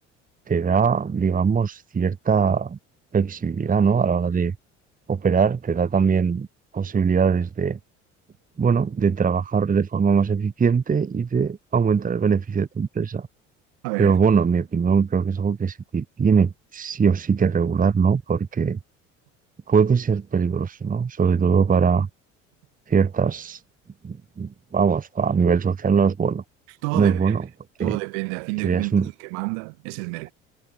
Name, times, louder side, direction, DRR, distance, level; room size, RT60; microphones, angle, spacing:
voice 1, 0.5-2.8 3.1-4.5 5.1-6.5 6.7-7.8 8.6-13.3 14.0-18.8 19.7-22.1 22.9-23.6 24.0-26.4 26.9-27.4 27.8-28.0 28.6-29.1, right 6 dB, 20° right, 1.1 m, -21 dB
voice 2, 13.8-14.2 26.8-27.4 27.8-30.3, right 38 dB, 70° right, 3.0 m, -29 dB
hypercardioid pair, 60°, 37 cm